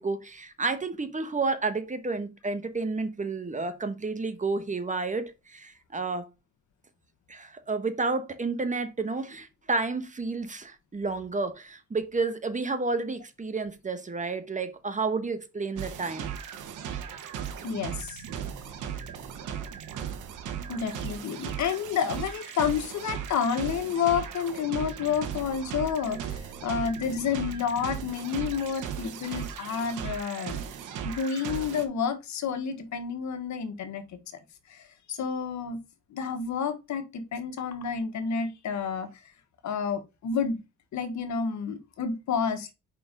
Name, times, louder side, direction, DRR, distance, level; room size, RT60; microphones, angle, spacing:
voice 1, 0.0-6.3 7.3-16.3, right 3 dB, 25° right, 1.2 m, -31 dB
sound 1, 15.8-31.8, right 8 dB, 85° right, 1.4 m, -37 dB
voice 2, 17.6-18.2 20.7-30.6 31.0-34.0 34.7-35.8 36.1-39.2 39.6-40.6 40.9-42.7, left 6 dB, 70° left, 1.4 m, -30 dB
5.4 x 4.5 x 5.2 m
cardioid pair, 90°, 30 cm